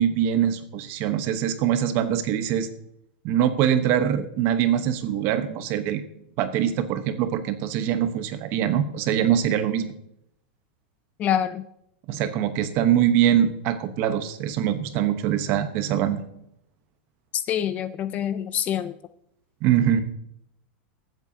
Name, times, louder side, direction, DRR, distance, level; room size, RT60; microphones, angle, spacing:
voice 1, 0.0-2.7 3.2-6.0 6.4-9.9 12.1-16.2 19.6-20.0, right 10 dB, 40° right, 10 dB, 1.0 m, -23 dB
voice 2, 11.2-11.6 17.5-19.0, left 10 dB, 25° left, 13 dB, 0.4 m, -26 dB
23.0 x 7.9 x 2.8 m, 0.77 s
supercardioid pair, 160°, 6 cm